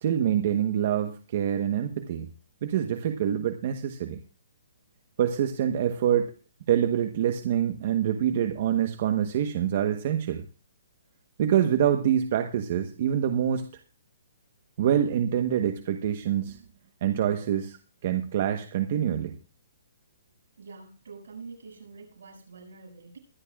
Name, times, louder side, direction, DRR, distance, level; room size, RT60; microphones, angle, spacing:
voice 1, 0.0-2.3 2.6-4.2 5.2-6.3 6.7-10.4 11.4-13.7 14.8-16.6 17.0-17.8 18.0-19.4, right 10 dB, 45° right, 6 dB, 1.1 m, -26 dB
voice 2, 20.6-23.2, right 4 dB, 75° right, -1 dB, 7.1 m, -46 dB
23.0 x 10.5 x 2.4 m, 0.35 s
hypercardioid pair, 160°, 0 cm